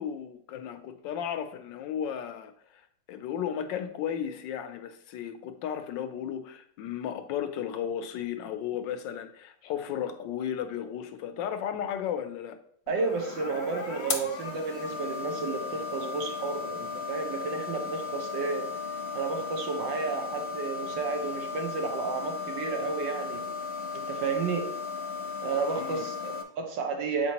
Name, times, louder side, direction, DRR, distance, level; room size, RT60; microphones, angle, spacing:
voice 1, 0.0-12.6 25.7-26.1, left 9 dB, 90° left, 9 dB, 1.3 m, -34 dB
sound 1, 12.9-26.4, left 5 dB, 50° left, 0.8 m, -36 dB
voice 2, 12.9-18.7 19.1-23.4 23.9-24.7 25.4-27.3, right 4 dB, 85° right, 4 dB, 1.6 m, -32 dB
7.4 x 4.5 x 2.8 m, 0.62 s
omnidirectional pair, 1.9 m